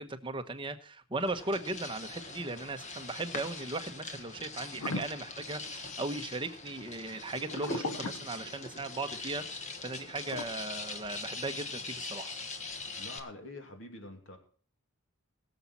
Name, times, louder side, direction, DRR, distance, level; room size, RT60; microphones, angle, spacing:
voice 1, 0.0-12.3, right 2 dB, 20° right, 8 dB, 1.0 m, -37 dB
sound 1, 1.2-13.2, left 3 dB, 30° left, 1.5 m, -42 dB
sound 2, 4.8-6.2 7.4-9.0 10.3-10.4, left 2 dB, 85° left, 1.0 m, -38 dB
voice 2, 13.0-14.4, left 2 dB, 55° left, 4 dB, 2.8 m, -46 dB
21.5 x 7.2 x 4.2 m, 0.44 s
head